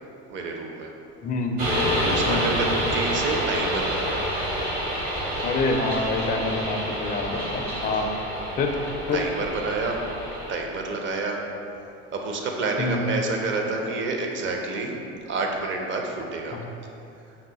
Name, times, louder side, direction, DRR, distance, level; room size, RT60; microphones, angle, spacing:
voice 1, 0.3-0.9 2.0-2.7 2.9-4.3 7.0-7.5 8.7-8.8 9.1-10.0 10.5-11.4 12.1-14.9 15.3-16.6, right 3 dB, 35° right, 1 dB, 0.6 m, -29 dB
voice 2, 1.2-1.6 2.3-2.5 5.4-8.1 8.6-8.8 9.1-9.2 12.8-13.0 16.5-16.6, left 3 dB, 25° left, 3 dB, 0.4 m, -26 dB
sound 1, 1.6-10.5, equal, 60° right, 1.4 m, -28 dB
5.4 x 2.1 x 3.9 m, 2.7 s
supercardioid pair, 90°, 34 cm